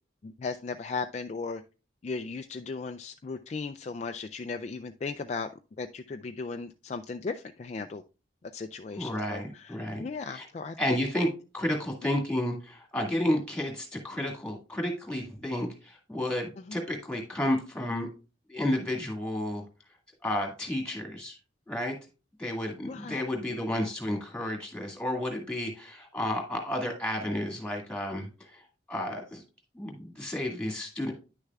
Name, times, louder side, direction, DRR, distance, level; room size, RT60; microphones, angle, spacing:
voice 1, 0.2-1.6 2.0-5.5 5.8-8.0 8.5-11.2 16.7-16.8 22.8-23.3, left 4 dB, 35° left, 0.3 m, -37 dB
voice 2, 9.0-10.5 10.8-11.3 11.5-18.1 18.5-19.6 20.2-21.4 21.7-21.9 22.4-28.6 28.9-29.4 29.7-31.1, left 1 dB, 5° left, 2.0 m, -31 dB
10.0 x 6.5 x 2.3 m
head